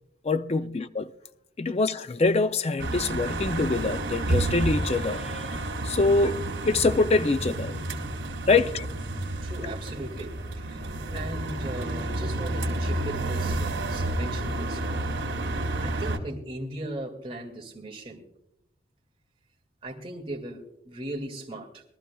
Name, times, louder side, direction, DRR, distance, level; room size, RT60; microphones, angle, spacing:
voice 1, 0.2-1.1 1.6-6.4 6.6-7.8 8.5-8.9, left 3 dB, 30° left, 0.4 m, -25 dB
sound 1, 2.8-16.2, right 1 dB, 75° right, 2.4 m, -30 dB
voice 2, 9.4-15.1 15.8-18.3 19.8-21.8, right 1 dB, 30° right, 2.1 m, -38 dB
23.0 x 13.0 x 2.3 m
head